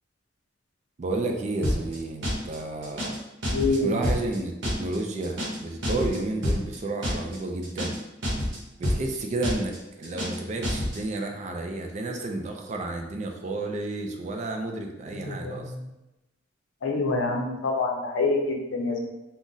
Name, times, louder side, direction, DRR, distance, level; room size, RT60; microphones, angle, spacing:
voice 1, 1.0-3.1 3.7-8.0 8.8-15.7, right 2 dB, 35° right, 3 dB, 0.3 m, -31 dB
sound 1, 1.6-2.0 2.2-2.6 2.8-3.2 3.4-3.8 4.0-4.4 4.6-5.0 5.2-5.6 5.8-6.2 6.4-6.8 7.0-7.4 7.6-8.6 8.8-9.2 9.4-9.8 10.0-10.4 10.6-11.0, equal, 70° right, 0.8 m, -27 dB
voice 2, 3.5-4.1 15.1-15.9 16.8-19.1, left 3 dB, 90° left, 2 dB, 0.5 m, -27 dB
3.7 x 2.1 x 2.6 m, 0.98 s
head